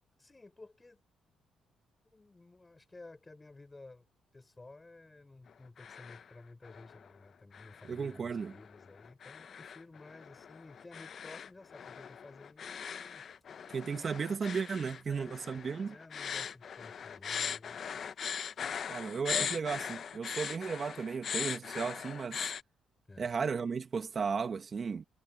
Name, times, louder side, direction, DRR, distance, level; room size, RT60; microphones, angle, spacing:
voice 1, 0.1-1.0 2.1-4.1 4.3-13.3 15.0-15.3 15.8-17.8 23.1-23.4, left 2 dB, 20° left, 4.9 m, -54 dB
sound 1, 5.5-6.3 6.6-7.1 7.5-22.6, left 7 dB, 55° left, 0.7 m, -40 dB
voice 2, 7.9-8.5 13.7-15.9 18.9-22.5 23.2-25.0, right 5 dB, 45° right, 1.7 m, -35 dB
cardioid pair, 90°, 0 cm